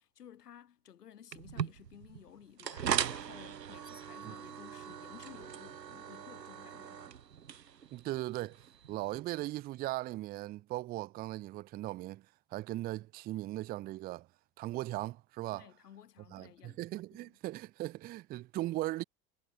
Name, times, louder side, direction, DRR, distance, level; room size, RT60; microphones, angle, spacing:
voice 1, 0.0-7.1 15.5-16.8 17.1-17.3, left 10 dB, 70° left, 5.2 m, -55 dB
sound 1, 1.3-9.2, right 8 dB, 90° right, 0.6 m, -40 dB
voice 2, 7.9-8.6 8.9-12.2 12.5-14.3 14.6-15.7 16.3-19.0, right 17 dB, 20° right, 0.4 m, -38 dB
figure-of-eight pair, 75°, 48 cm